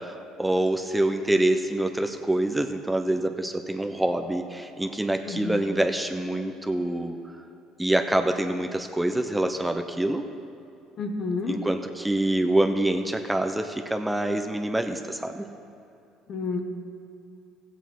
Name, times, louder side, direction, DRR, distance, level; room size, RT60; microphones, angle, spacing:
voice 1, 0.0-7.2 7.8-10.2 11.5-15.5, right 1 dB, 10° right, 5 dB, 0.7 m, -26 dB
voice 2, 5.3-5.6 11.0-11.6 16.3-16.7, left 3 dB, 50° left, 5 dB, 1.2 m, -30 dB
15.0 x 8.1 x 4.6 m, 2.6 s
supercardioid pair, 80°, 0 cm